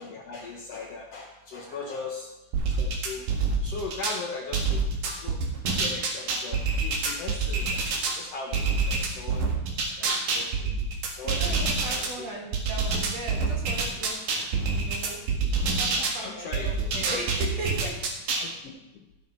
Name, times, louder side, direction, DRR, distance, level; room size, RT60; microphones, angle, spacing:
voice 1, 0.0-2.3 2.8-3.3 3.6-4.8 5.2-5.4 5.8-7.8 8.1-9.5 10.0-10.9 11.1-12.3 15.0-15.1 15.9-16.9 18.4-18.7, left 4 dB, 65° left, 1 dB, 1.7 m, -39 dB
voice 2, 1.6-1.9 11.2-14.3 14.7-15.2 15.8-18.0, right 2 dB, 55° right, -2 dB, 3.1 m, -38 dB
sound 1, 2.5-4.2 4.5-8.2 8.5-12.1 12.5-16.2 16.5-18.5, right 4 dB, 80° right, 3.2 m, -27 dB
13.0 x 8.7 x 4.4 m, 1.0 s
omnidirectional pair, 3.7 m